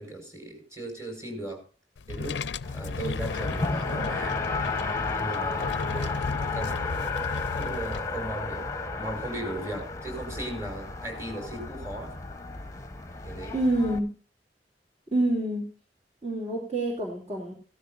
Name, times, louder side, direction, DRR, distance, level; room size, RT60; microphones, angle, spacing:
voice 1, 0.0-1.6 2.1-2.4 2.7-4.4 5.1-7.1 7.5-8.6 9.0-12.1 13.2-13.5, right 1 dB, 15° right, 2 dB, 5.2 m, -37 dB
sound 1, 2.0-8.0, left 4 dB, 80° left, 0.5 m, -35 dB
Race car auto racing, 2.6-14.0, left 3 dB, 20° left, 1.1 m, -33 dB
voice 2, 13.5-14.1 15.1-15.6 16.2-17.5, right 1 dB, 35° right, -3 dB, 2.8 m, -27 dB
16.5 x 13.5 x 2.6 m, 0.37 s
head